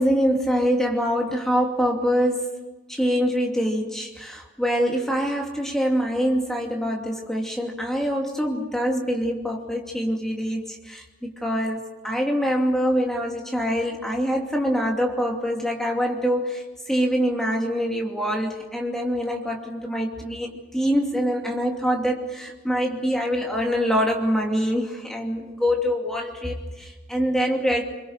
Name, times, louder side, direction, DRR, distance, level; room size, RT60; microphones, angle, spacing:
voice 1, 0.0-2.6 2.9-27.8, equal, ahead, 0 dB, 2.6 m, -24 dB
26.0 x 23.0 x 6.6 m, 1.2 s
head